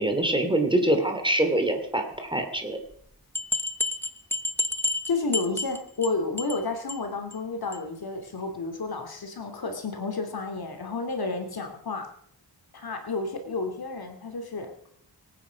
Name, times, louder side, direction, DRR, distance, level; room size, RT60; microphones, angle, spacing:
voice 1, 0.0-2.8, right 1 dB, 10° right, 4 dB, 2.9 m, -24 dB
sound 1, 2.9-3.0 3.3-6.1 6.4-6.6 6.9-7.0 7.3-7.4 7.7-7.8, left 2 dB, 5° left, 0.9 m, -29 dB
voice 2, 5.1-12.1 12.7-14.7, left 3 dB, 65° left, 5 dB, 2.9 m, -31 dB
24.5 x 9.4 x 5.3 m, 0.67 s
wide cardioid pair, 100°, 40 cm